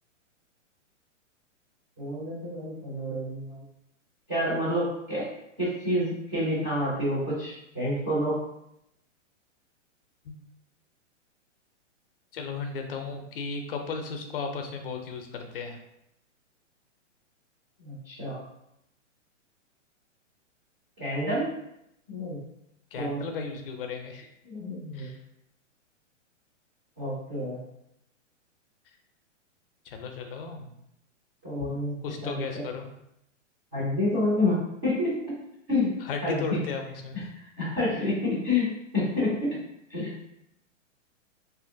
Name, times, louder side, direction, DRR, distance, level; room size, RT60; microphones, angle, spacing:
voice 1, 2.0-3.6 4.3-5.3 5.6-8.4 17.8-18.4 21.0-21.5 22.1-22.4 23.0-23.2 24.4-25.1 27.0-27.6 31.4-31.9 32.2-32.4 33.7-35.3 35.7-36.6 37.6-39.6 39.9-40.1, left 1 dB, 15° right, -10 dB, 0.3 m, -28 dB
voice 2, 12.3-15.8 22.9-24.3 24.9-25.2 29.9-30.7 31.6-31.7 32.0-32.9 36.0-37.3, left 5 dB, 50° left, 4 dB, 0.5 m, -35 dB
2.8 x 2.5 x 2.5 m, 0.80 s
hypercardioid pair, 155°, 38 cm